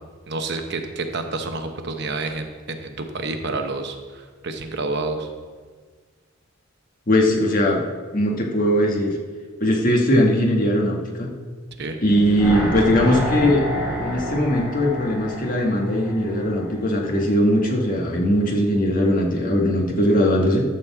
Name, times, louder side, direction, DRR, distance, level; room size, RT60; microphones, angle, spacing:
voice 1, 0.3-5.3 11.8-12.0, right 3 dB, 55° right, 5 dB, 0.9 m, -29 dB
voice 2, 7.1-7.8 8.1-9.1 9.6-11.3 12.0-13.7 13.9-20.6, equal, 40° left, -1 dB, 1.5 m, -20 dB
sound 1, 12.1-17.2 17.5-17.6, equal, 5° right, 2.5 m, -29 dB
12.0 x 4.3 x 7.1 m, 1.5 s
head